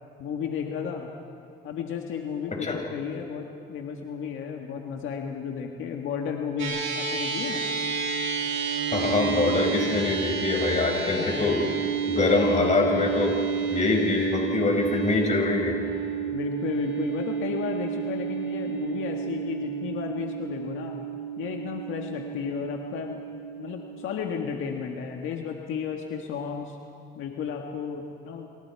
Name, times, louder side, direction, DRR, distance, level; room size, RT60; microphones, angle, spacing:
voice 1, 0.2-1.1 1.6-7.7 11.1-11.4 16.3-21.0 21.4-23.2 23.6-26.8 27.2-28.5, left 7 dB, 85° left, 2 dB, 1.7 m, -33 dB
sound 1, 6.6-25.1, right 6 dB, 85° right, 5.1 m, -31 dB
voice 2, 8.9-11.6 12.1-13.4 13.7-15.8, left 3 dB, 35° left, 1 dB, 6.0 m, -24 dB
29.5 x 27.0 x 4.8 m, 2.4 s
cardioid pair, 90°, 20 cm